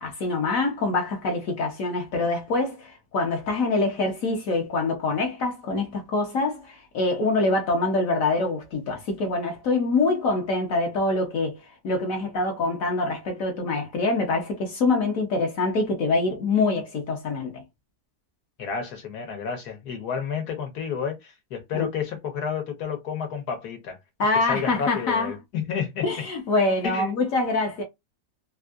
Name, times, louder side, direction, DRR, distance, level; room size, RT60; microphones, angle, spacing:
voice 1, 0.0-11.6 11.8-17.6 21.7-21.9 24.2-25.3 26.0-27.8, left 3 dB, 65° left, 1.1 m, -25 dB
voice 2, 18.6-24.0 24.3-26.1 26.8-27.2, left 7 dB, 85° left, 1.6 m, -30 dB
3.5 x 2.5 x 2.3 m
omnidirectional pair, 1.6 m